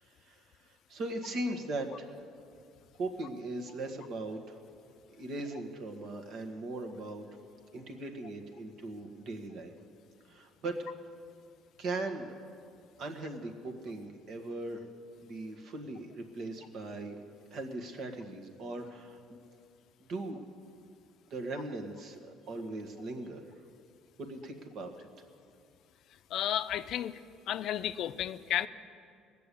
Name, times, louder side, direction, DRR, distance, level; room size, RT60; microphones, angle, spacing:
voice 1, 0.2-2.2 3.0-4.6 5.2-7.3 7.7-9.7 10.3-10.9 11.8-12.4 13.0-14.9 15.2-17.2 17.5-19.4 20.1-20.4 21.3-23.4 24.2-24.9, right 2 dB, 55° right, 5 dB, 1.6 m, -39 dB
voice 2, 26.3-27.2 27.5-28.7, left 11 dB, 60° left, 12 dB, 0.5 m, -32 dB
18.5 x 6.9 x 8.4 m, 2.3 s
cardioid pair, 110°, 0 cm